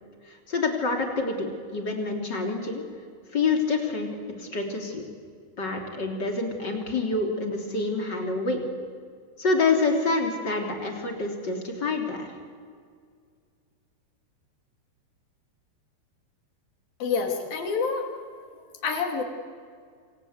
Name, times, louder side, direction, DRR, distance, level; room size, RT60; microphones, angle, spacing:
voice 1, 0.3-2.8 3.3-4.1 4.4-5.0 5.6-8.6 9.4-12.3, left 3 dB, 25° left, 2 dB, 3.2 m, -27 dB
voice 2, 17.0-18.1 18.8-19.2, left 5 dB, 60° left, 3 dB, 4.3 m, -27 dB
27.5 x 26.5 x 8.1 m, 2.1 s
omnidirectional pair, 4.9 m